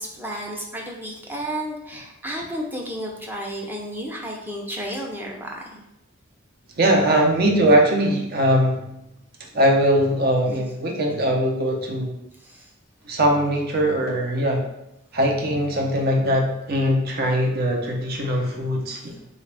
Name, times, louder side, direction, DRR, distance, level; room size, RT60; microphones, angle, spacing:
voice 1, 0.0-5.8 12.4-12.7, equal, 10° right, -1 dB, 0.5 m, -32 dB
voice 2, 6.8-8.8 9.5-12.2 13.1-14.7 15.1-19.1, equal, 50° right, 1 dB, 0.6 m, -21 dB
3.9 x 2.3 x 3.3 m, 0.85 s
head